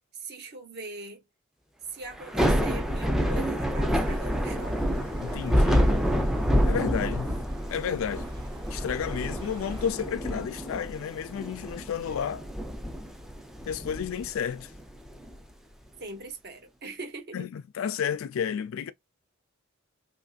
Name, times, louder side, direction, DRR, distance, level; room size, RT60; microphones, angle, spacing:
voice 1, 0.1-1.2 1.9-4.9 16.0-17.4, right 2 dB, 50° right, 0.8 m, -41 dB
Thunder / Rain, 2.2-15.3, equal, ahead, 0.4 m, -28 dB
sound 1, 3.9-9.9, equal, 25° right, 1.0 m, -43 dB
voice 2, 5.2-5.9 6.7-7.4 7.7-8.3 8.7-12.5 13.7-14.7 17.3-18.9, left 7 dB, 75° left, 0.3 m, -31 dB
2.9 x 2.6 x 2.3 m
head